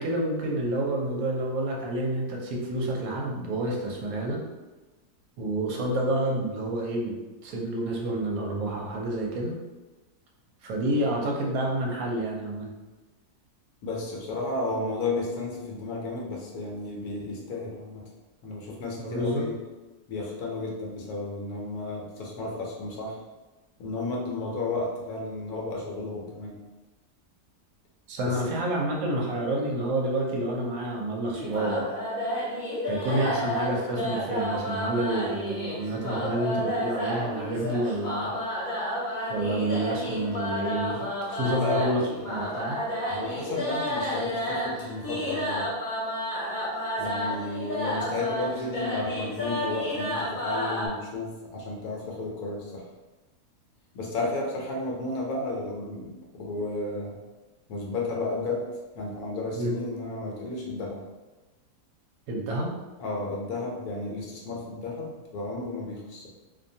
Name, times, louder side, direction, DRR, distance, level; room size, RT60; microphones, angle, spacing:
voice 1, 0.0-4.4 5.4-7.1 7.4-9.5 10.6-12.7 19.0-19.5 28.1-31.8 32.8-38.3 39.3-42.8 59.5-59.7 62.3-62.7, right 1 dB, 70° right, -1 dB, 1.0 m, -29 dB
voice 2, 13.8-18.1 18.4-19.6 20.1-23.2 23.8-26.6 28.2-28.5 33.1-33.3 41.4-41.9 43.1-45.7 47.0-52.9 53.9-57.2 57.7-58.7 58.9-61.0 63.0-66.3, left 2 dB, 75° left, -1 dB, 1.1 m, -33 dB
sound 1, 31.3-50.9, equal, 40° left, 0.8 m, -31 dB
2.6 x 2.2 x 2.6 m, 1.2 s
omnidirectional pair, 1.7 m